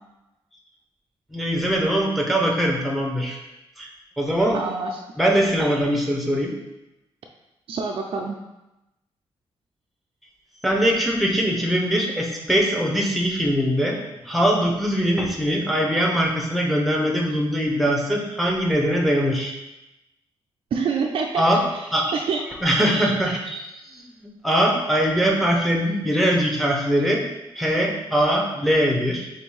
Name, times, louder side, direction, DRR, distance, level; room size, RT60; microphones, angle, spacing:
voice 1, 1.3-3.4 3.8-3.9 4.2-4.6 5.2-6.5 10.6-14.0 14.2-19.5 21.4-21.6 21.9-22.1 22.6-23.6 23.9-27.2 27.5-29.3, equal, ahead, -1 dB, 0.7 m, -22 dB
voice 2, 4.5-5.0 7.7-8.4 20.7-21.5 21.7-22.4, right 5 dB, 60° right, 1 dB, 0.4 m, -26 dB
3.7 x 2.6 x 4.7 m, 0.95 s
cardioid pair, 110°, 10 cm